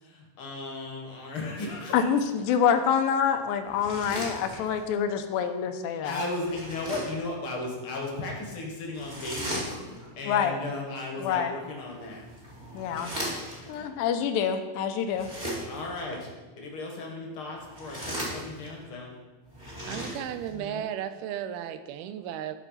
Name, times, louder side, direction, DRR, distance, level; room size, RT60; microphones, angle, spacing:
voice 1, 0.0-2.1 4.5-4.7 5.9-12.2 12.9-13.3 13.7-13.9 15.7-16.3 16.6-19.1 19.7-20.1 20.5-20.9, left 2 dB, 50° left, 0 dB, 1.6 m, -36 dB
voice 2, 1.9-6.2 10.3-10.6 11.2-11.5 12.7-13.2 13.7-15.3, left 7 dB, 80° left, 7 dB, 2.2 m, -26 dB
sound 1, 3.7-4.9 6.4-7.3 8.9-10.1 11.9-13.7 15.1-15.9 17.6-18.8 19.5-20.6, equal, 15° right, 1.5 m, -37 dB
voice 3, 19.9-22.6, right 10 dB, 80° right, 10 dB, 2.4 m, -34 dB
13.5 x 4.8 x 5.7 m, 1.2 s
omnidirectional pair, 4.5 m